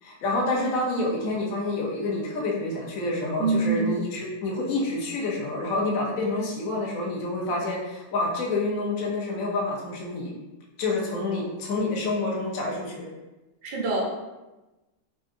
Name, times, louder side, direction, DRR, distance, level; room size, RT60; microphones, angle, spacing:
voice 1, 0.0-10.3 10.8-13.1, left 2 dB, 65° left, -3 dB, 0.9 m, -28 dB
voice 2, 3.4-4.0 13.6-14.0, right 3 dB, 90° right, -4 dB, 0.5 m, -25 dB
3.7 x 2.5 x 2.5 m, 1.1 s
omnidirectional pair, 2.2 m